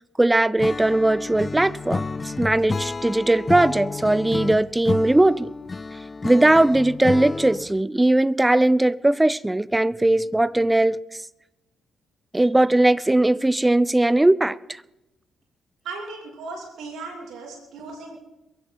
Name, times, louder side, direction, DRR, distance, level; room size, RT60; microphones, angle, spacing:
voice 1, 0.2-5.5 6.2-11.0 12.3-14.6, right 1 dB, 15° right, 0.6 m, -19 dB
Acoustic guitar / Strum, 0.6-7.8, left 4 dB, 35° left, 0.4 m, -31 dB
voice 2, 15.8-18.2, right 3 dB, 70° right, 2.9 m, -37 dB
22.5 x 11.0 x 4.1 m
hypercardioid pair, 45°, 0 cm